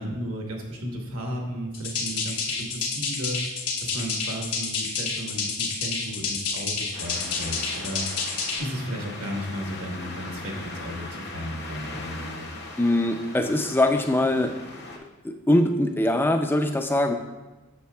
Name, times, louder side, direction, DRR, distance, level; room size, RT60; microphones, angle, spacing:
voice 1, 0.0-8.2 8.6-12.5, equal, 70° right, 1 dB, 1.2 m, -34 dB
sound 1, 1.7-8.6, left 4 dB, 85° left, 1.1 m, -29 dB
sound 2, 6.9-15.0, left 2 dB, 50° left, 0.8 m, -39 dB
voice 2, 12.8-14.5 15.2-17.1, left 1 dB, 10° left, 5 dB, 0.3 m, -22 dB
8.4 x 6.7 x 2.3 m, 1.1 s
head